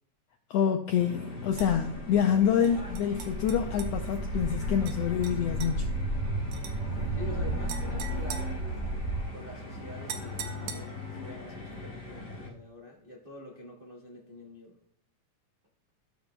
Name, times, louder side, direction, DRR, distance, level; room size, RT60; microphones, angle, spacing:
voice 1, 0.5-5.9, left 8 dB, 85° left, 5 dB, 1.4 m, -27 dB
sound 1, 1.0-12.5, left 1 dB, 20° left, 2.2 m, -40 dB
Walk footsteps, 1.5-9.2, right 1 dB, 30° right, 1.3 m, -34 dB
sound 2, 1.6-1.7 2.6-3.9 4.8-5.0 5.2-5.7 6.5-6.8 7.7-9.2 10.1-11.1, right 7 dB, 85° right, 2.4 m, -42 dB
voice 2, 7.1-8.8 9.3-14.8, left 2 dB, 70° right, -2 dB, 0.5 m, -46 dB
13.5 x 7.0 x 2.2 m, 0.66 s
omnidirectional pair, 3.5 m